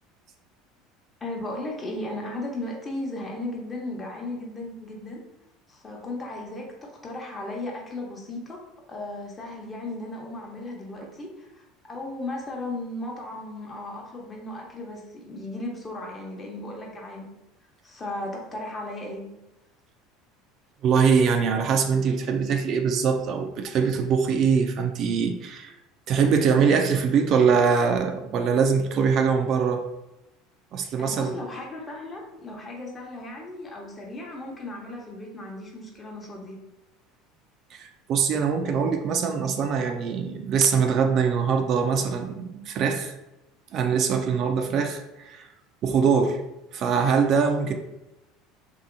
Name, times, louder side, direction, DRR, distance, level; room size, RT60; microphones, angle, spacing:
voice 1, 1.2-5.2 5.7-8.6 8.9-17.3 17.8-19.3 31.0-36.6, left 2 dB, 30° left, -1 dB, 0.9 m, -36 dB
voice 2, 20.8-25.7 26.1-29.8 30.7-31.4 37.7-43.1 43.7-45.5 45.8-46.4 46.7-47.7, right 6 dB, 50° right, 5 dB, 0.3 m, -23 dB
2.7 x 2.6 x 2.5 m, 0.95 s
hypercardioid pair, 85°, 0 cm